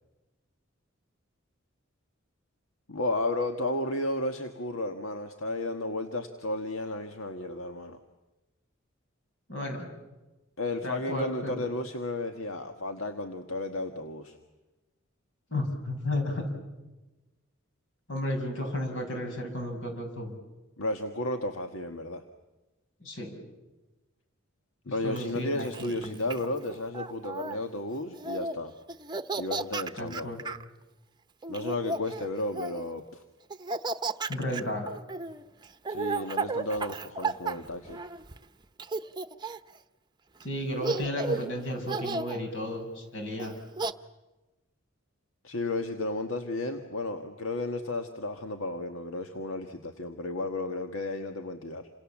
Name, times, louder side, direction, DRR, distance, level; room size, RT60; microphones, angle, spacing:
voice 1, 2.9-8.0 10.6-14.4 20.8-22.2 24.9-28.7 29.4-30.3 31.5-33.2 35.9-38.0 45.4-51.9, left 2 dB, 90° left, 6 dB, 1.6 m, -33 dB
voice 2, 9.5-9.9 10.8-11.6 15.5-16.5 18.1-20.3 23.0-23.3 24.9-26.2 30.0-30.4 34.3-34.9 40.4-43.5, left 1 dB, 70° left, 4 dB, 6.8 m, -33 dB
Laughter, 25.2-27.6 28.1-28.6 28.9-30.6 31.4-32.9 33.5-38.4 38.8-39.8 40.4-40.5 40.8-41.5 41.9-42.4 43.4-43.9, right 3 dB, 20° right, 0.9 m, -34 dB
28.5 x 26.5 x 7.4 m, 1.1 s
head